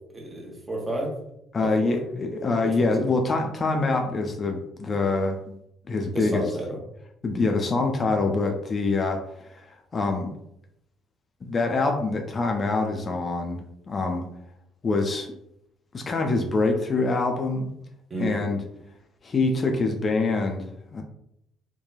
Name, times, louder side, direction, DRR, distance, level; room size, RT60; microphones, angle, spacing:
voice 1, 0.1-1.1 1.6-2.0 2.8-3.2 6.1-6.8 18.1-18.4, right 1 dB, 25° right, 0 dB, 0.8 m, -31 dB
voice 2, 1.5-5.4 5.9-6.4 7.2-9.2 9.5-10.3 11.4-14.3 14.8-15.3 15.9-17.7 18.2-18.6 19.2-21.0, left 3 dB, 35° left, 3 dB, 0.4 m, -25 dB
2.9 x 2.2 x 2.3 m, 0.78 s
figure-of-eight pair, 50°, 0 cm